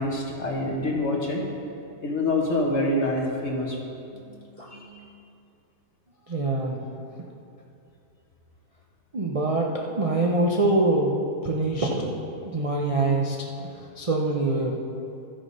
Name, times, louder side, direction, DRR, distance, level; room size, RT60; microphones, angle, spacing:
voice 1, 0.0-1.4 2.0-3.8 4.7-4.8, left 1 dB, 45° left, -2 dB, 1.7 m, -26 dB
voice 2, 4.1-5.1 6.3-6.8 9.1-11.1 11.4-12.1 12.4-14.8, right 2 dB, 60° right, -2 dB, 0.3 m, -25 dB
13.0 x 6.8 x 5.4 m, 2.7 s
omnidirectional pair, 1.8 m